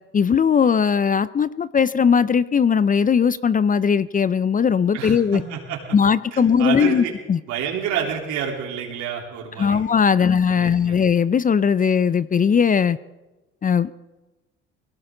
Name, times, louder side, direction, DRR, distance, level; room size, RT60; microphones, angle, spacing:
voice 1, 0.1-5.4 5.9-7.4 9.6-13.0 13.6-14.0, left 6 dB, 30° left, 17 dB, 0.5 m, -19 dB
voice 2, 4.9-6.0 6.3-7.1 7.5-9.8 10.1-11.0, right 8 dB, 75° right, 0 dB, 3.6 m, -29 dB
21.0 x 18.0 x 3.9 m, 1.1 s
supercardioid pair, 70°, 29 cm